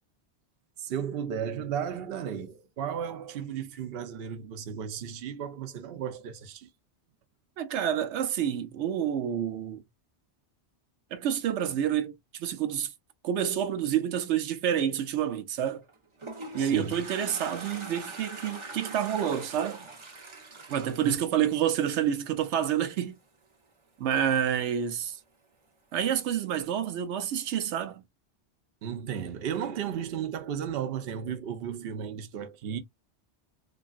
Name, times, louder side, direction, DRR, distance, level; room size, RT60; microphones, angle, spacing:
voice 1, 0.8-6.7 16.6-17.0 21.0-21.1 28.8-32.8, right 8 dB, 65° right, 0.8 m, -34 dB
voice 2, 7.6-9.8 11.1-12.9 13.2-15.8 16.5-19.9 20.7-23.2 24.0-25.2 25.9-28.0, right 9 dB, 90° right, 0.9 m, -28 dB
Toilet flush, 15.8-22.2, right 2 dB, 30° right, 0.7 m, -43 dB
3.1 x 2.5 x 2.3 m
omnidirectional pair, 1.2 m